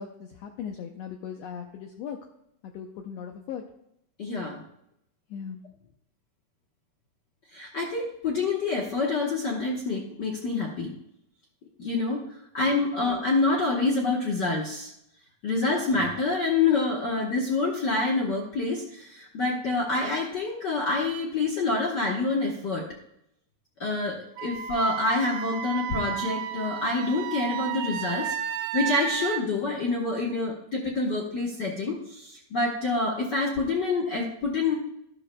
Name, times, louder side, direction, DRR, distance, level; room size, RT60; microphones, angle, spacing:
voice 1, 0.0-2.2 2.6-3.6 5.3-5.6 12.7-12.9, left 7 dB, 75° left, 4 dB, 1.6 m, -38 dB
voice 2, 4.2-4.6 7.5-10.9 11.8-12.2 12.5-14.9 15.4-22.9 23.8-28.3 28.7-34.8, left 3 dB, 55° left, -2 dB, 1.2 m, -27 dB
Wind instrument woodwind instrument, 24.4-29.4, right 10 dB, 80° right, 2.0 m, -33 dB
12.0 x 12.0 x 2.2 m, 0.78 s
omnidirectional pair, 3.4 m